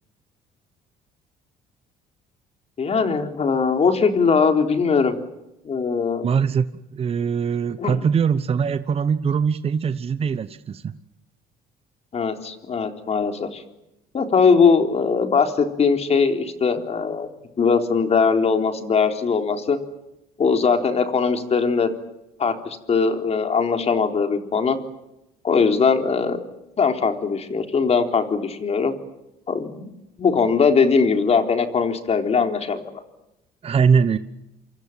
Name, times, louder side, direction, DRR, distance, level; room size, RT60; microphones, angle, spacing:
voice 1, 2.8-5.2 5.7-6.3 7.8-8.0 12.1-13.6 14.1-17.3 17.6-19.8 20.4-21.9 22.4-24.8 25.4-26.4 26.8-28.9 29.5-29.9 30.2-32.8, left 5 dB, 40° left, 6 dB, 3.8 m, -20 dB
voice 2, 6.2-6.7 6.9-10.9 33.6-34.2, right 6 dB, 35° right, 12 dB, 1.0 m, -21 dB
27.5 x 26.0 x 7.5 m, 0.91 s
cardioid pair, 110°, 17 cm